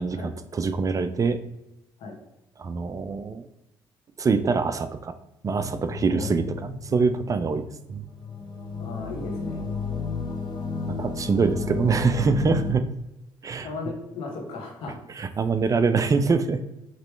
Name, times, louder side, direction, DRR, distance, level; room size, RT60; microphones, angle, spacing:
voice 1, 0.0-1.4 2.6-3.5 4.2-5.1 5.4-7.6 7.9-8.0 10.9-12.8 13.4-13.7 15.2-16.6, right 4 dB, 35° right, 11 dB, 0.4 m, -24 dB
sound 1, 5.5-12.7, left 4 dB, 50° left, 1.0 m, -33 dB
voice 2, 8.8-9.6 13.6-15.0, left 3 dB, 75° left, 1 dB, 1.3 m, -36 dB
5.2 x 3.0 x 3.2 m, 0.94 s
cardioid pair, 80°, 9 cm